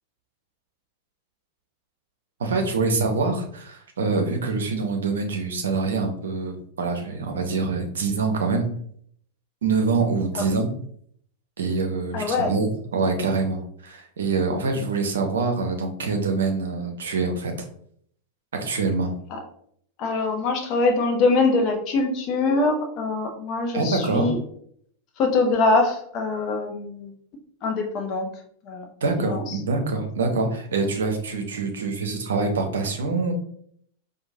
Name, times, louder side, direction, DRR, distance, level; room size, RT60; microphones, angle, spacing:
voice 1, 2.4-8.7 9.6-10.7 11.6-17.5 18.5-19.1 23.7-24.3 29.0-33.3, right 4 dB, 65° right, 4 dB, 0.6 m, -25 dB
voice 2, 12.1-12.5 19.3-19.4 20.0-24.4 25.2-27.1 27.6-28.3 28.6-28.8 29.2-29.6, left 3 dB, 35° left, 3 dB, 0.7 m, -23 dB
4.5 x 2.3 x 2.6 m, 0.64 s
figure-of-eight pair, 90°, 0 cm